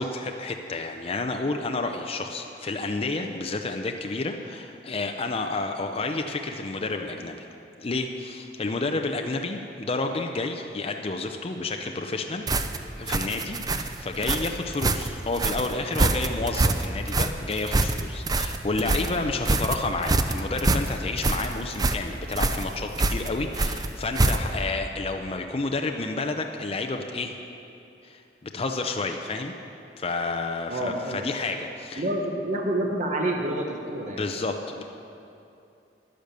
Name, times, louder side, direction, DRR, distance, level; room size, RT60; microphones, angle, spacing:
voice 1, 0.0-7.5 7.8-12.5 13.0-27.4 28.0-29.5 30.0-32.0 34.2-34.8, left 3 dB, 35° left, 4 dB, 0.5 m, -30 dB
sound 1, 12.5-24.7, right 2 dB, 20° right, 0.5 m, -26 dB
voice 2, 30.7-31.2 31.9-34.2, right 1 dB, 45° right, 1 dB, 1.1 m, -28 dB
10.5 x 10.0 x 6.7 m, 2.7 s
head